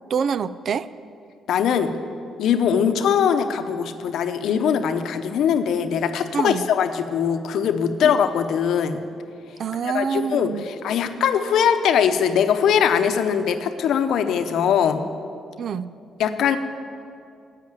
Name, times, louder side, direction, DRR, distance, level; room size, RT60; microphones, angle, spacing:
voice 1, 0.1-0.9 6.3-6.6 8.0-8.1 9.6-10.7 15.6-15.9, right 6 dB, 55° right, 16 dB, 0.4 m, -26 dB
voice 2, 1.5-1.9 2.4-9.0 9.8-15.0 16.2-16.6, left 8 dB, 75° left, 8 dB, 0.8 m, -21 dB
10.5 x 8.3 x 9.2 m, 2.4 s
cardioid pair, 90°, 0 cm